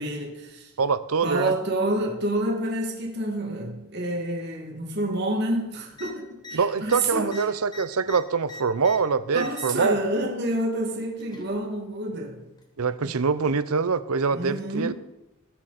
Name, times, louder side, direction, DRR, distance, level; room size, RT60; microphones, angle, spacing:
voice 1, 0.0-0.7 1.2-7.4 9.3-12.5 13.0-13.2 14.3-14.9, right 1 dB, 50° right, 2.0 m, -28 dB
voice 2, 0.8-1.5 6.5-9.9 12.8-14.9, right 5 dB, 85° right, 0.6 m, -24 dB
sound 1, 5.9-6.1 6.4-6.6 6.8-9.0 9.3-9.9 10.9-11.5 12.6-12.7, left 2 dB, 20° left, 1.6 m, -41 dB
20.0 x 7.7 x 4.2 m
head